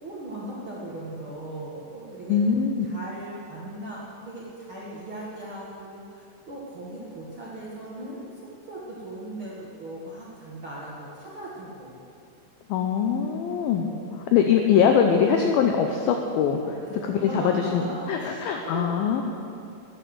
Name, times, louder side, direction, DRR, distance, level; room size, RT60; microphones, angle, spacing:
voice 1, 0.0-2.4 2.8-8.3 8.7-11.9 13.9-14.0 16.6-18.9, right 1 dB, 60° right, -6 dB, 1.3 m, -38 dB
voice 2, 2.3-2.9 12.7-13.9 14.1-16.6 16.9-17.8 18.1-19.2, left 7 dB, 90° left, 4 dB, 2.1 m, -22 dB
12.0 x 9.8 x 8.0 m, 2.6 s
omnidirectional pair, 5.1 m